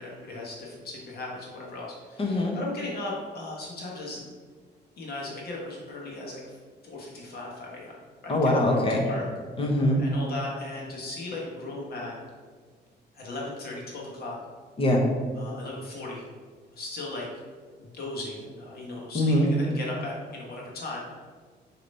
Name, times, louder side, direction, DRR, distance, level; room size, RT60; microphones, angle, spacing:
voice 1, 0.0-4.2 5.0-6.6 6.8-7.9 8.2-9.2 10.0-12.2 13.1-14.4 15.4-16.3 16.8-17.3 17.8-21.3, left 2 dB, 60° left, -3 dB, 1.3 m, -37 dB
voice 2, 2.2-2.6 8.3-9.1 9.6-10.0 14.8-15.1 19.1-19.5, left 1 dB, 30° left, 0 dB, 1.0 m, -23 dB
6.5 x 3.0 x 5.3 m, 1.5 s
cardioid pair, 170°, 18 cm